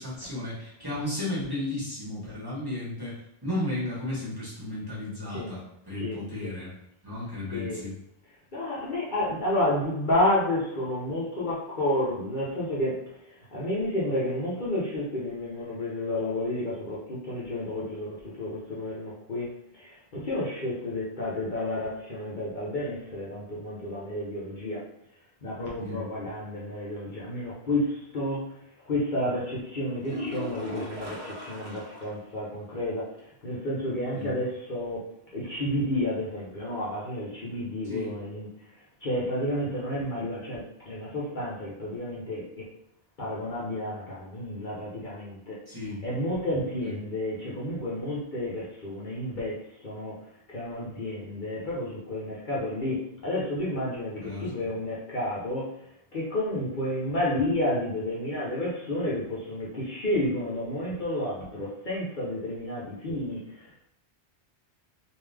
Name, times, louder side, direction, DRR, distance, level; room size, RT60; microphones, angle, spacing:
voice 1, 0.0-6.7 7.0-7.9 25.7-26.0 34.1-34.4 37.8-38.2 45.7-46.0 46.8-46.9 54.2-54.5, left 1 dB, 20° right, -8 dB, 1.3 m, -34 dB
voice 2, 6.0-6.5 7.5-7.8 8.5-13.0 13.5-24.8 25.4-28.6 28.9-33.1 33.4-35.0 35.3-38.5 39.0-42.6 43.2-45.6 46.0-50.2 50.5-55.7 56.1-63.8, left 1 dB, 50° left, -7 dB, 1.0 m, -31 dB
sound 1, 30.0-32.3 32.6-32.7 33.1-33.2 37.0-37.1, left 1 dB, 45° right, 0.9 m, -38 dB
3.5 x 2.7 x 3.4 m, 0.76 s
omnidirectional pair, 1.1 m